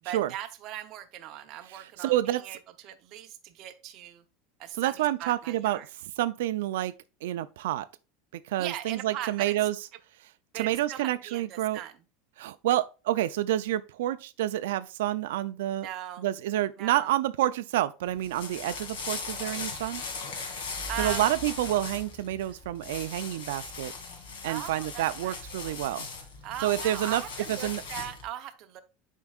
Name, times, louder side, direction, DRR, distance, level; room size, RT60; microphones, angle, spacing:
voice 1, 0.0-2.6 2.8-4.2 4.6-5.9 8.6-9.6 10.5-11.9 15.7-16.3 16.8-17.1 20.9-21.2 24.5-25.7 26.4-28.8, right 12 dB, 35° right, 0.7 m, -39 dB
voice 2, 1.7-2.4 4.7-6.9 7.2-7.9 8.3-9.8 10.5-11.8 12.4-15.9 16.2-20.0 21.0-23.9 24.4-26.1 26.6-27.2 27.5-27.8, right 13 dB, 90° right, 0.4 m, -29 dB
sound 1, 18.0-28.2, left 4 dB, 85° left, 2.3 m, -38 dB
10.5 x 4.5 x 2.3 m
supercardioid pair, 180°, 0 cm